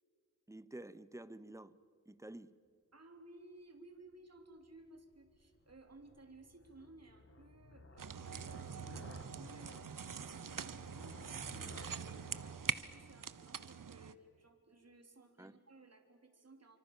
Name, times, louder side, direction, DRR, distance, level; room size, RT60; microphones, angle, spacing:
voice 1, 0.5-1.7 2.1-2.5 10.2-10.3 15.4-15.6, right 1 dB, 10° right, 15 dB, 0.9 m, -50 dB
voice 2, 2.9-16.8, right 2 dB, 50° right, 5 dB, 3.3 m, -59 dB
sound 1, 4.4-13.9, left 3 dB, 45° left, 1.9 m, -57 dB
sound 2, 8.0-14.1, right 7 dB, 80° right, 0.9 m, -44 dB
29.0 x 24.5 x 7.3 m, 2.1 s
wide cardioid pair, 90°, 32 cm